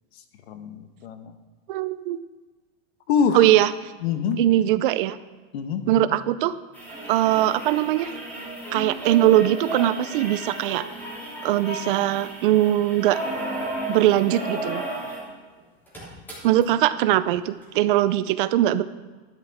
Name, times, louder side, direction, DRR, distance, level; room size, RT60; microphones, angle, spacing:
voice 1, 0.5-1.3 3.1-3.5 4.0-4.4 5.5-6.2, left 6 dB, 75° left, 8 dB, 1.3 m, -25 dB
voice 2, 1.7-2.2 3.3-3.9 4.4-5.2 5.9-6.5 7.1-8.1 8.7-10.8 11.4-13.2 13.9-14.8 16.4-18.8, right 13 dB, 55° right, 14 dB, 0.6 m, -21 dB
sound 1, 6.7-15.3 15.6-15.7 15.9-16.6 17.6-17.7, right 1 dB, 5° left, 3.0 m, -34 dB
12.0 x 10.5 x 3.5 m, 1.4 s
supercardioid pair, 160°, 32 cm